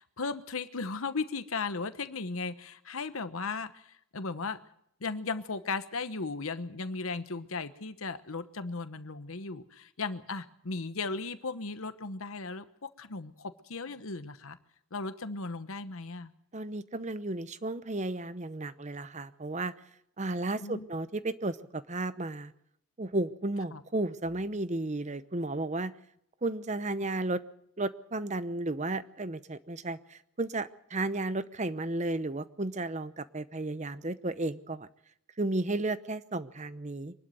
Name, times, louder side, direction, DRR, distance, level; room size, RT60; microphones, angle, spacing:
voice 1, 0.0-4.6 5.0-14.6 14.9-16.3 20.6-20.9 23.7-23.8, left 4 dB, 75° left, 11 dB, 1.1 m, -36 dB
voice 2, 16.5-19.7 20.2-22.5 23.0-25.9 26.4-27.4 27.8-34.9 35.4-37.1, right 2 dB, 30° right, 14 dB, 0.8 m, -33 dB
24.5 x 12.0 x 9.2 m, 0.73 s
head